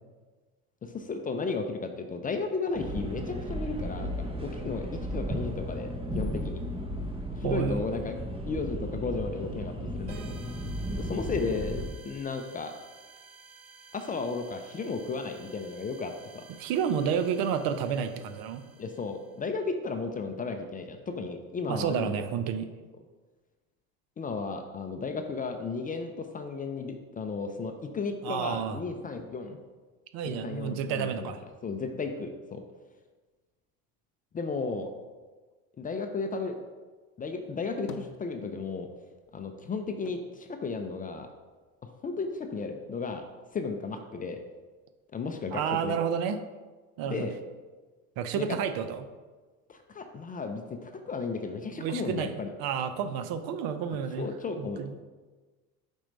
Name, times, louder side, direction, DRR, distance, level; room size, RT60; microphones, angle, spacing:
voice 1, 0.8-4.1 4.4-6.6 7.4-8.1 8.5-10.3 11.0-12.7 13.9-16.4 18.8-22.2 24.2-29.6 30.2-31.3 31.6-32.6 34.3-34.9 35.8-36.6 37.2-38.9 39.3-41.3 41.8-43.2 43.5-44.4 45.1-46.0 47.1-47.3 48.4-48.5 49.7-52.5 54.2-55.0, left 4 dB, 20° left, 6 dB, 0.5 m, -34 dB
sound 1, 2.7-11.9, equal, 15° right, 0.9 m, -35 dB
voice 2, 7.4-7.9 16.6-18.6 21.7-22.7 28.2-28.8 30.1-31.4 45.5-46.4 47.0-47.3 48.2-49.1 51.7-54.3 54.6-54.9, right 7 dB, 55° right, 10 dB, 0.7 m, -30 dB
sound 2, 10.1-19.5, right 4 dB, 85° right, 1.1 m, -53 dB
sound 3, 37.4-38.9 39.2-41.6 42.0-42.9, left 7 dB, 75° left, 0.7 m, -49 dB
5.4 x 4.3 x 5.1 m, 1.3 s
supercardioid pair, 95°, 42 cm